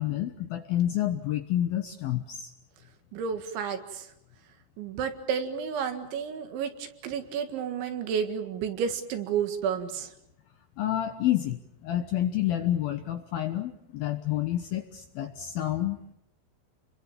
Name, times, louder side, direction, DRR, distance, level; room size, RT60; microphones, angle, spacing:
voice 1, 0.0-2.5 10.8-16.1, left 12 dB, 70° left, 7 dB, 2.4 m, -29 dB
voice 2, 3.1-4.1 4.8-10.1, right 7 dB, 70° right, 7 dB, 4.1 m, -31 dB
29.5 x 22.0 x 7.3 m, 0.81 s
omnidirectional pair, 5.6 m